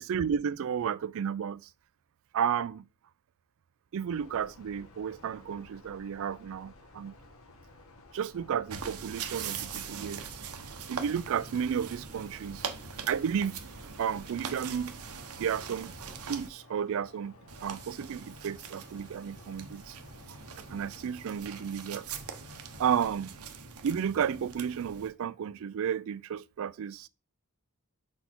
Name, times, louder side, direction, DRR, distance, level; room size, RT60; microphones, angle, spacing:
voice 1, 0.0-1.6 2.3-2.8 3.9-7.1 8.1-10.2 10.9-12.7 13.1-13.6 14.0-15.0 15.4-15.9 16.3-20.0 20.7-22.2 22.8-23.4 23.8-27.1, right 8 dB, 65° right, 0.3 m, -32 dB
sound 1, 4.1-23.1, left 2 dB, 65° left, 1.1 m, -55 dB
sound 2, 8.7-16.5 17.5-25.1, right 6 dB, 80° right, 0.8 m, -42 dB
5.3 x 4.2 x 4.4 m
head